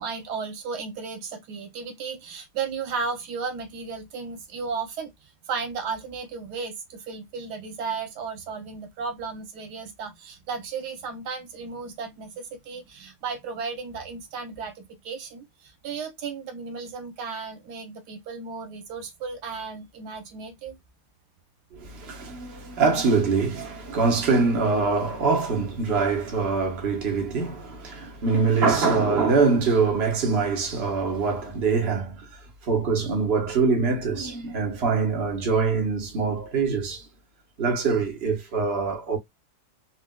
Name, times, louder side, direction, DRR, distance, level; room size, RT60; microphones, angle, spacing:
voice 1, 0.0-20.8, right 5 dB, 85° right, 1.4 m, -34 dB
voice 2, 21.7-37.0 37.6-39.2, right 4 dB, 45° right, 1.2 m, -24 dB
4.1 x 2.1 x 2.2 m
omnidirectional pair, 1.7 m